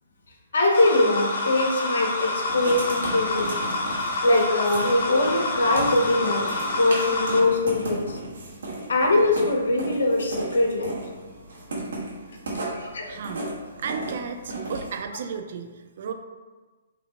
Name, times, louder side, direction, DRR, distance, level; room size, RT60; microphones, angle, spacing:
voice 1, 0.5-3.5 4.2-6.5 6.8-8.2 8.9-11.0 12.7-13.1, left 2 dB, 70° left, 1 dB, 0.7 m, -22 dB
sound 1, 0.7-7.4, left 2 dB, 50° left, 1.1 m, -28 dB
Writing, 2.4-15.0, right 2 dB, 75° right, 1.5 m, -35 dB
voice 2, 13.1-13.5 13.8-16.1, right 6 dB, 55° right, 6 dB, 0.5 m, -34 dB
5.1 x 2.7 x 2.8 m, 1.3 s
hypercardioid pair, 135°, 0 cm